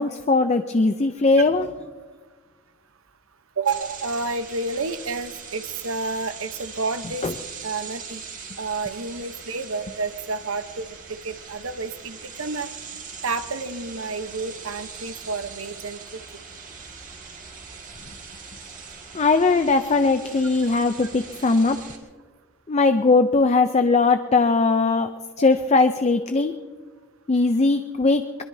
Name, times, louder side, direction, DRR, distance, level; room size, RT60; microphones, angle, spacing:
voice 1, 0.0-1.7 7.2-7.3 19.1-21.8 22.7-25.1 25.4-26.5 27.3-28.2, left 3 dB, 30° left, 8 dB, 0.5 m, -19 dB
voice 2, 3.6-7.3 7.6-8.2 8.6-12.7 13.2-16.0 20.4-20.5, right 3 dB, 75° right, 10 dB, 0.9 m, -30 dB
sound 1, 3.7-22.0, right 5 dB, 40° right, 2.0 m, -41 dB
22.5 x 22.0 x 2.7 m, 1.5 s
head